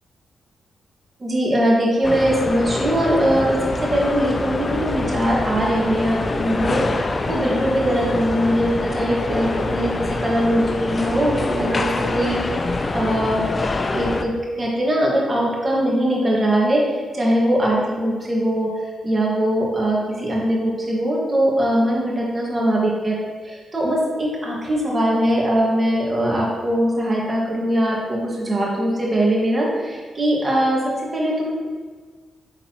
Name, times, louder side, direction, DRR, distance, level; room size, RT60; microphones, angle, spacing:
voice 1, 1.2-6.8 7.3-13.4 13.9-23.2 23.4-31.5, equal, 30° right, -3 dB, 1.7 m, -21 dB
sound 1, 2.0-14.2, left 3 dB, 35° left, 0.4 m, -25 dB
8.7 x 3.9 x 3.0 m, 1.4 s
cardioid pair, 80°, 0 cm